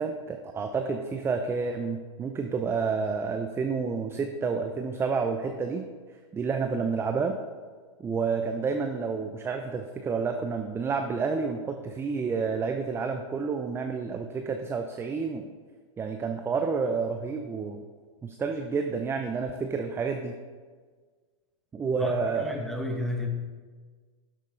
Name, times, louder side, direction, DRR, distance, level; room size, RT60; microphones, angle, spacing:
voice 1, 0.0-5.8 6.3-7.3 8.0-15.4 16.0-17.8 18.2-20.3 21.7-22.6, right 5 dB, 15° right, 5 dB, 0.6 m, -29 dB
voice 2, 22.4-23.3, left 1 dB, ahead, 1 dB, 1.4 m, -31 dB
12.5 x 6.4 x 3.9 m, 1.5 s
hypercardioid pair, 115°, 17 cm